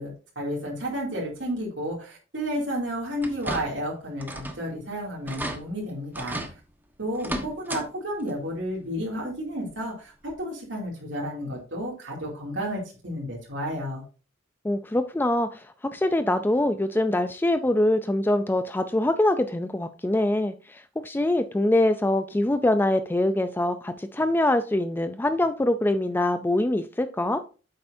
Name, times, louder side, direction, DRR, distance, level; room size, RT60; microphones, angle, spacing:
voice 1, 0.0-6.4 7.0-14.0, equal, 80° right, -3 dB, 2.6 m, -32 dB
sound 1, 3.2-3.9 4.2-4.6 4.9-5.0 5.3-5.6 6.1-6.5 7.1-7.8 8.2-8.3 9.7-9.8 10.3-10.4, right 1 dB, 10° right, 1.2 m, -33 dB
voice 2, 14.6-15.6 15.9-27.4, left 1 dB, 10° left, 10 dB, 0.4 m, -24 dB
9.6 x 7.8 x 2.6 m, 0.35 s
head